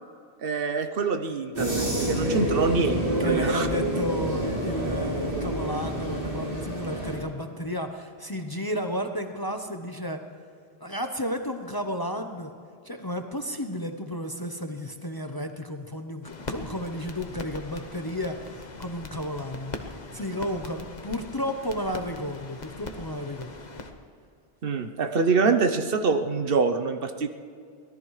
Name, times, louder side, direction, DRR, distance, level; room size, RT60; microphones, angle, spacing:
voice 1, 0.4-3.7 24.6-27.3, right 4 dB, 60° right, 7 dB, 0.9 m, -25 dB
sound 1, 1.5-7.2, right 1 dB, 40° right, 3.9 m, -28 dB
voice 2, 3.2-10.2 10.8-12.5 12.8-19.7 20.1-23.5, equal, 25° left, 5 dB, 0.7 m, -32 dB
sound 2, 16.2-23.9, left 3 dB, 40° left, 1.1 m, -41 dB
24.0 x 18.0 x 3.2 m, 2.3 s
omnidirectional pair, 1.1 m